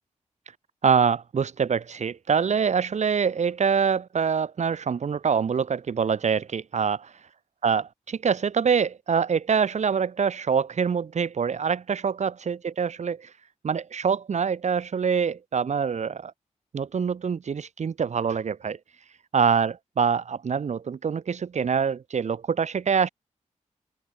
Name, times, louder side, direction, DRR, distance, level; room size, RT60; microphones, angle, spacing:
voice 1, 0.8-7.1 7.6-13.3 13.6-16.3 16.7-18.8 19.3-23.1, right 6 dB, 65° right, 1.4 m, -25 dB
open air
cardioid pair, 70°, 13 cm